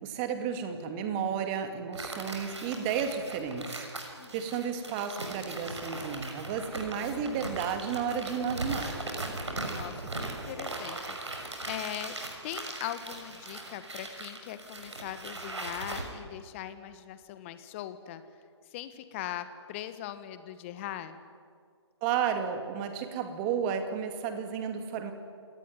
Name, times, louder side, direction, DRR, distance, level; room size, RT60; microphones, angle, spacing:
voice 1, 0.0-3.8 4.3-8.9 22.0-25.1, right 7 dB, 25° right, 7 dB, 2.4 m, -32 dB
sound 1, 1.9-16.0, right 2 dB, 75° right, 6.3 m, -39 dB
voice 2, 9.7-12.1 12.4-18.2 18.7-21.1, left 12 dB, 25° left, 11 dB, 1.4 m, -40 dB
28.0 x 18.5 x 9.7 m, 2.2 s
figure-of-eight pair, 140°, 15 cm